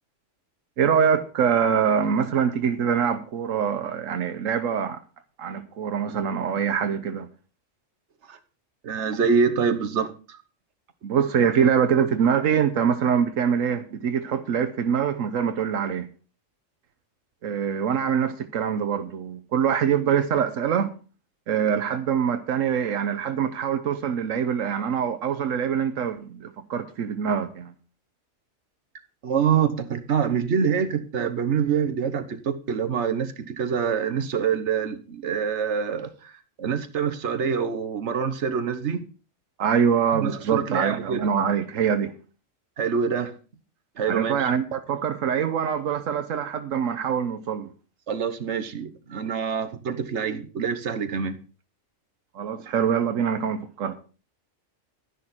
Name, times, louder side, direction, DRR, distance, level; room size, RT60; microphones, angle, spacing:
voice 1, 0.8-5.0 5.4-7.3 11.0-16.1 17.4-20.9 21.5-27.7 39.6-42.1 44.1-47.7 52.3-54.0, right 7 dB, 85° right, 1.2 m, -24 dB
voice 2, 8.8-10.4 29.2-39.0 40.1-41.3 42.8-43.3 44.0-44.5 48.1-51.4, right 6 dB, 60° right, 1.4 m, -26 dB
12.5 x 10.5 x 4.3 m
omnidirectional pair, 1.3 m